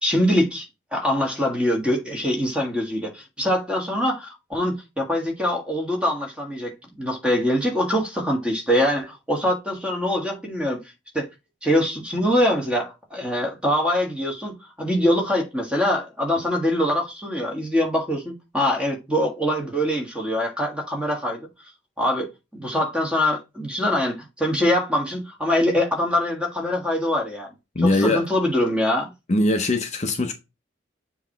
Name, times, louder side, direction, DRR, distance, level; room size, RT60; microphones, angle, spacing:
voice 1, 0.0-10.8 11.1-11.3 11.6-21.5 22.0-27.5 27.8-29.1, left 1 dB, 5° right, 1.5 m, -23 dB
voice 2, 27.8-28.2 29.3-30.3, left 1 dB, 35° left, 0.6 m, -21 dB
7.2 x 3.0 x 4.4 m
head